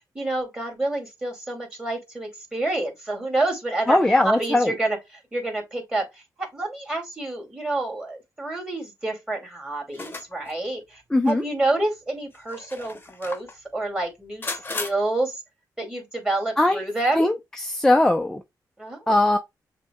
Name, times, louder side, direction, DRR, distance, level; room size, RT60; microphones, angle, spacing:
voice 1, 0.1-5.0 5.3-6.0 6.5-13.5 13.7-15.4 15.8-17.3 18.8-19.2, right 2 dB, 10° right, 2.2 m, -28 dB
voice 2, 3.9-4.7 11.1-11.4 16.6-16.8 17.2-18.4 19.1-19.4, left 2 dB, 5° left, 0.5 m, -20 dB
sound 1, 9.9-10.6 11.3-11.4 12.3-13.6 14.4-14.9, left 3 dB, 30° left, 0.9 m, -34 dB
6.6 x 2.2 x 2.3 m
cardioid pair, 75°, 7 cm